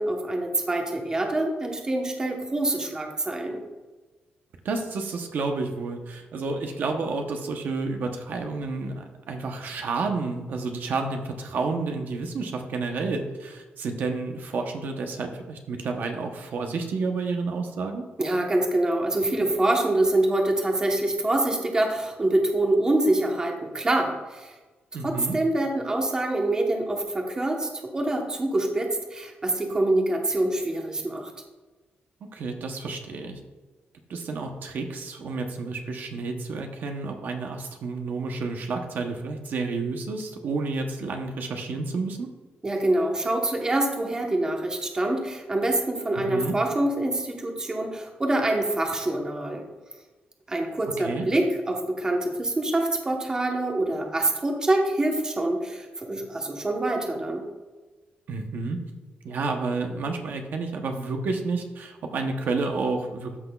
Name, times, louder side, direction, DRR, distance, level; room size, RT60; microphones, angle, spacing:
voice 1, 0.0-3.6 18.2-24.5 25.0-31.3 42.6-49.6 50.5-57.4, right 1 dB, 20° right, 2 dB, 1.0 m, -25 dB
voice 2, 4.6-18.0 24.9-25.4 32.3-33.4 34.1-42.3 46.3-46.5 51.0-51.2 58.3-58.8 59.2-63.4, right 3 dB, 65° right, 4 dB, 0.8 m, -30 dB
13.5 x 6.0 x 2.3 m, 1.2 s
wide cardioid pair, 160°, 4 cm